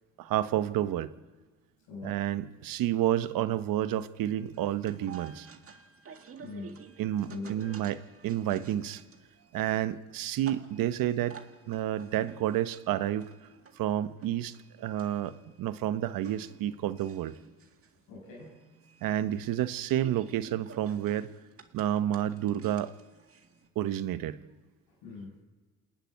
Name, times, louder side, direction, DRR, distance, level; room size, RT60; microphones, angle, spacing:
voice 1, 0.2-1.1 2.0-5.5 7.0-9.0 9.5-11.4 11.7-13.3 13.8-17.4 19.0-21.3 21.7-22.9 23.8-24.4, right 12 dB, 80° right, 12 dB, 1.0 m, -30 dB
voice 2, 1.9-2.2 6.4-6.8 7.3-7.8 18.1-18.6 25.0-25.4, left 3 dB, 90° left, -5 dB, 6.3 m, -42 dB
sound 1, 4.1-23.7, right 6 dB, 40° right, 1.9 m, -53 dB
28.0 x 9.9 x 9.6 m, 1.3 s
cardioid pair, 105°, 33 cm